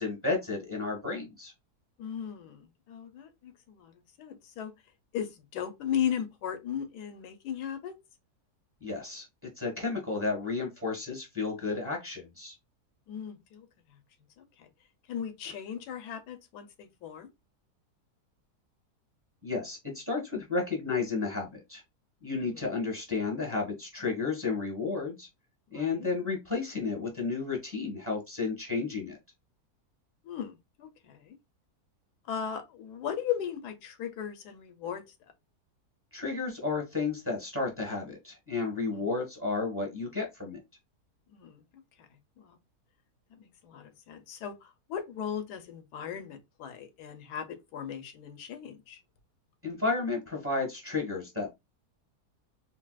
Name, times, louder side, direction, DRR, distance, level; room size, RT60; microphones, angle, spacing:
voice 1, 0.0-1.5 8.8-12.6 19.4-21.8 22.2-25.3 25.7-29.2 36.1-40.6 49.6-51.5, left 4 dB, 10° right, 1.1 m, -32 dB
voice 2, 2.0-4.7 5.1-7.9 13.1-13.7 14.4-14.7 15.1-17.3 22.4-22.7 25.7-26.1 30.2-31.3 32.3-35.0 38.9-39.0 41.3-41.6 42.4-42.6 43.4-49.0, left 9 dB, 80° left, 1.2 m, -37 dB
4.0 x 2.1 x 2.3 m
omnidirectional pair, 1.7 m